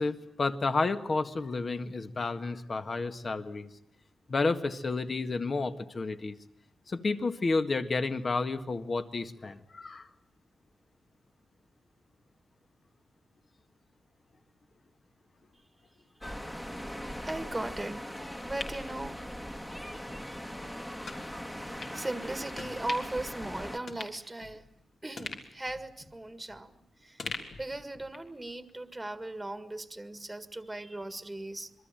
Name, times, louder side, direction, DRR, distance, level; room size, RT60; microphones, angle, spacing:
voice 1, 0.0-3.7 4.3-6.4 6.9-10.1, left 3 dB, 35° left, 9 dB, 1.8 m, -31 dB
sound 1, 16.2-23.8, equal, 10° left, 1.7 m, -40 dB
voice 2, 17.3-18.0 18.4-19.1 21.9-24.7 25.0-26.7 27.0-27.3 27.6-31.7, right 2 dB, 10° right, 11 dB, 1.8 m, -38 dB
sound 2, 18.1-19.8 20.1-20.2 21.0-21.2 21.8-22.0 22.5-23.2 23.5-23.6 23.9-24.8 25.2-26.8 27.2-28.4 28.7-28.8, left 3 dB, 55° left, 3.6 m, -43 dB
26.5 x 23.0 x 9.1 m, 0.68 s
wide cardioid pair, 140°, 0 cm